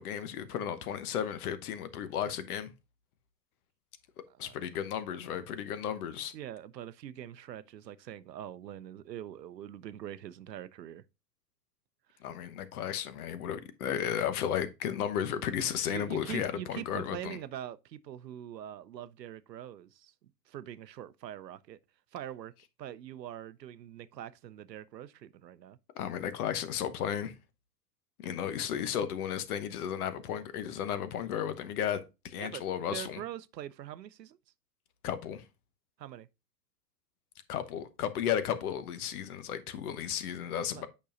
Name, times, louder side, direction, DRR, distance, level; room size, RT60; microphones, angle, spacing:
voice 1, 0.0-2.7 4.4-6.3 12.2-17.4 25.9-27.3 28.2-33.2 35.0-35.4 37.5-40.9, left 9 dB, 65° left, 1.1 m, -34 dB
voice 2, 6.3-11.0 15.9-21.8 22.1-22.5 22.8-25.8 32.4-32.6 32.9-34.4 36.0-36.3 40.7-40.9, right 11 dB, 90° right, 0.6 m, -43 dB
8.5 x 5.4 x 2.5 m
hypercardioid pair, 105°, 48 cm